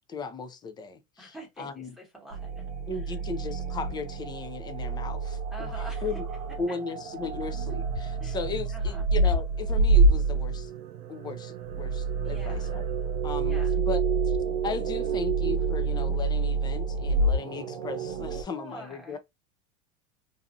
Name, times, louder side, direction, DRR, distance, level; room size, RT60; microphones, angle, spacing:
voice 1, 0.1-1.9 2.9-6.3 6.6-10.7 11.1-12.8 13.2-14.4 14.6-19.2, left 5 dB, 20° left, 0.5 m, -36 dB
voice 2, 1.2-2.7 5.5-6.1 8.2-8.4 8.7-9.0 12.2-12.7 13.5-13.8 18.5-19.2, right 2 dB, ahead, 1.2 m, -45 dB
sound 1, 2.3-18.4, right 3 dB, 85° right, 0.7 m, -27 dB
2.7 x 2.6 x 2.4 m
supercardioid pair, 120°, 19 cm